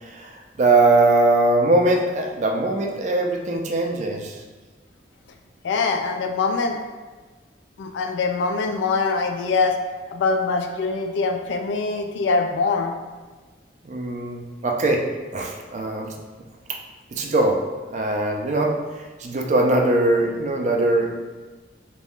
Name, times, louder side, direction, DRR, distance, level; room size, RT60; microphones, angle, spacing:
voice 1, 0.0-4.4 13.8-15.0 15.3-16.1 17.1-17.6 17.9-21.1, right 2 dB, 40° right, 2 dB, 0.3 m, -21 dB
voice 2, 5.6-6.8 7.8-9.8 10.1-12.9, left 4 dB, 80° left, 5 dB, 0.3 m, -23 dB
2.4 x 2.2 x 3.5 m, 1.3 s
head